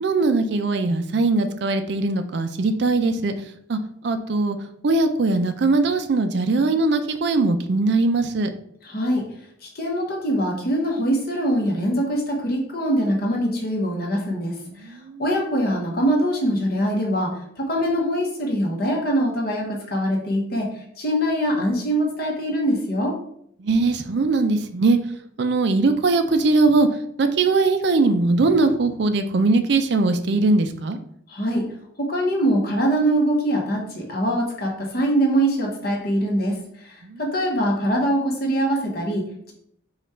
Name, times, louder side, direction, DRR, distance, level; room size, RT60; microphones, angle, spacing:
voice 1, 0.0-3.3 3.7-3.8 4.0-4.6 4.8-8.5 14.8-15.2 23.6-25.0 25.4-26.9 27.2-31.0 37.0-37.2, right 3 dB, 60° right, 8 dB, 0.4 m, -20 dB
voice 2, 8.8-9.3 9.6-14.6 14.8-14.9 15.2-23.1 31.3-31.7 32.0-39.5, equal, 50° left, 0 dB, 1.1 m, -23 dB
5.1 x 2.4 x 4.3 m, 0.69 s
head